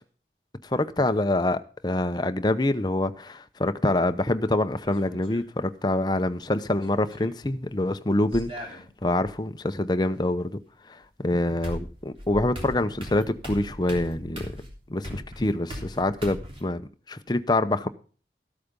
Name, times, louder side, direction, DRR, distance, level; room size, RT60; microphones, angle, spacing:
voice 1, 0.6-10.6 10.9-11.0 11.2-14.6 14.9-16.8 17.1-17.9, left 1 dB, 25° left, 0.7 m, -26 dB
sound 1, 4.9-5.5 6.7-7.4 8.3-9.3 11.0-11.1 11.6-16.6, equal, 30° right, 3.4 m, -38 dB
13.5 x 8.5 x 5.2 m
head